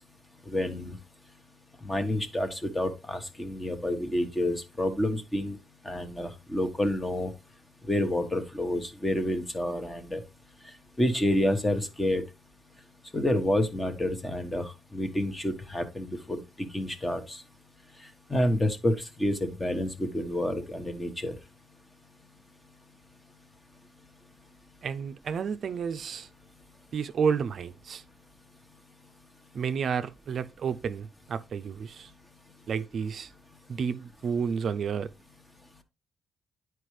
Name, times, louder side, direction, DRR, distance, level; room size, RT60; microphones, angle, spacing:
voice 1, 0.5-0.9 1.9-5.6 5.8-7.3 7.9-10.2 11.0-12.2 13.1-16.4 16.7-17.4 18.3-18.9 19.2-21.3, left 1 dB, 15° left, 1.2 m, -28 dB
voice 2, 24.8-26.3 26.9-28.0 29.5-32.1 32.7-33.3 33.7-35.1, right 6 dB, 55° right, 0.4 m, -31 dB
9.7 x 4.6 x 3.2 m
cardioid pair, 90°, 0 cm